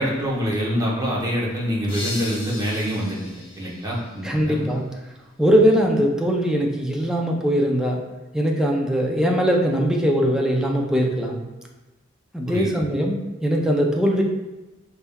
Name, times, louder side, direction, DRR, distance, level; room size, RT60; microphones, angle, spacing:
voice 1, 0.0-4.6 12.5-12.7, equal, 20° right, -5 dB, 0.9 m, -25 dB
sound 1, 1.9-4.7, left 2 dB, 30° left, 1.2 m, -37 dB
voice 2, 4.2-4.8 5.4-8.0 8.3-11.4 12.3-14.2, equal, 5° right, 0 dB, 0.4 m, -21 dB
4.0 x 3.5 x 2.2 m, 1.1 s
head